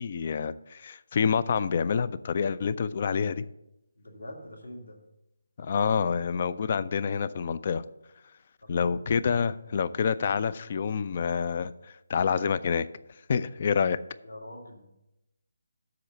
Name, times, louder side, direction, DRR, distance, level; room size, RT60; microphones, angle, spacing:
voice 1, 0.0-3.4 5.6-7.8 8.7-11.7 12.1-12.9 13.3-14.0, left 6 dB, 35° left, 16 dB, 0.3 m, -27 dB
voice 2, 4.0-5.0 8.6-9.0 14.2-14.9, left 1 dB, 70° left, 2 dB, 1.9 m, -44 dB
7.7 x 6.2 x 6.6 m, 0.88 s
figure-of-eight pair, 150°, 0 cm